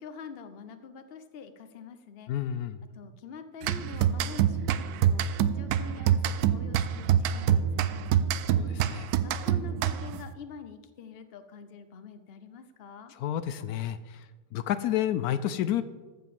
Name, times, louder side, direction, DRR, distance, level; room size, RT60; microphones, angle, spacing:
voice 1, 0.0-2.3 2.9-8.9 9.2-13.1, left 6 dB, 45° left, 9 dB, 0.9 m, -46 dB
voice 2, 2.3-2.8 8.6-9.1 13.2-14.0 14.5-15.8, left 11 dB, 80° left, 13 dB, 1.1 m, -29 dB
sound 1, 3.6-10.3, right 9 dB, 90° right, 1.1 m, -26 dB
14.0 x 5.7 x 7.0 m, 1.3 s
omnidirectional pair, 1.6 m